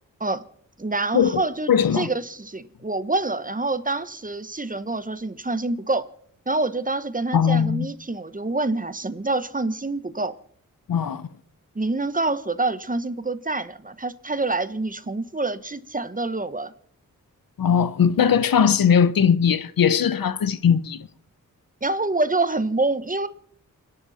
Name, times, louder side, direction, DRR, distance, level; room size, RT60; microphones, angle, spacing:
voice 1, 0.8-6.1 6.5-10.3 11.7-16.7 21.8-23.3, right 2 dB, 25° right, 1.3 m, -26 dB
voice 2, 1.7-2.1 7.3-7.9 10.9-11.3 17.6-21.1, left 7 dB, 75° left, 0.9 m, -19 dB
29.5 x 10.5 x 4.3 m
cardioid pair, 55°, 35 cm